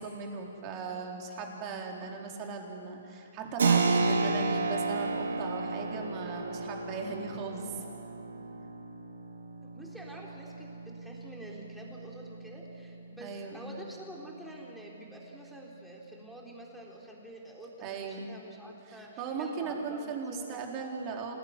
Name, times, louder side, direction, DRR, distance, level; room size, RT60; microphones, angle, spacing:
voice 1, 0.0-7.7 13.2-13.6 17.8-18.4 18.9-21.3, right 4 dB, 30° right, 1 dB, 3.9 m, -38 dB
Keyboard (musical), 3.6-14.0, right 3 dB, 80° right, 2.7 m, -33 dB
voice 2, 9.6-20.6, right 1 dB, ahead, -3 dB, 3.8 m, -47 dB
27.5 x 18.0 x 9.9 m, 2.9 s
hypercardioid pair, 155°, 0 cm